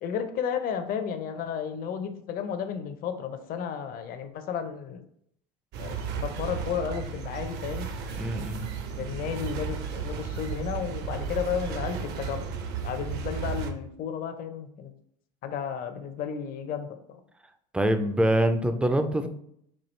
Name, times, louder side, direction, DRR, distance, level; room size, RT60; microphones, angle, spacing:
voice 1, 0.0-5.0 5.8-7.9 9.0-12.4 12.8-14.9 15.4-17.2, left 7 dB, 45° left, 8 dB, 0.5 m, -33 dB
sound 1, 5.7-13.7, right 6 dB, 55° right, 0.6 m, -34 dB
voice 2, 8.2-8.7 17.7-19.3, right 1 dB, 5° right, 8 dB, 0.3 m, -24 dB
4.5 x 2.3 x 3.1 m, 0.71 s
supercardioid pair, 100°, 20 cm